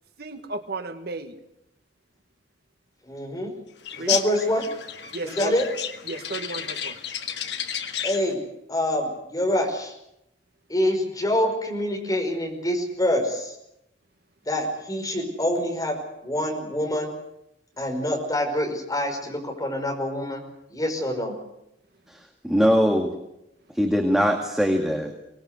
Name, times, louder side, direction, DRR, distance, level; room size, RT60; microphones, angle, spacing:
voice 1, 0.2-1.3 3.9-4.2 5.1-5.5 6.1-7.0, right 3 dB, 60° right, 8 dB, 1.6 m, -34 dB
voice 2, 3.0-3.6 4.0-4.7 5.2-5.6 8.0-8.4 8.7-9.9 10.7-13.5 14.5-17.1 17.8-20.4 20.7-21.3, left 1 dB, 20° left, 2 dB, 5.5 m, -26 dB
sound 1, 3.8-8.3, left 9 dB, 70° left, 1.8 m, -32 dB
voice 3, 22.1-23.1 23.7-25.1, equal, 5° right, 2 dB, 2.0 m, -22 dB
24.0 x 20.0 x 8.2 m, 0.83 s
head